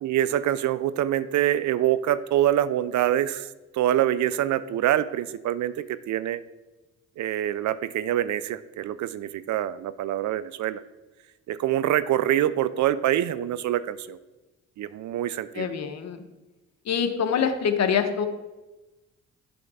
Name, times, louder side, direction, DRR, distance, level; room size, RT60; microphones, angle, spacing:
voice 1, 0.0-3.5 3.7-6.4 7.2-10.8 11.5-14.2 14.8-15.7, right 12 dB, 65° right, 15 dB, 0.5 m, -25 dB
voice 2, 15.5-16.2 16.9-18.3, left 7 dB, 60° left, 7 dB, 0.9 m, -25 dB
7.7 x 3.5 x 5.4 m, 1.1 s
supercardioid pair, 65°, 31 cm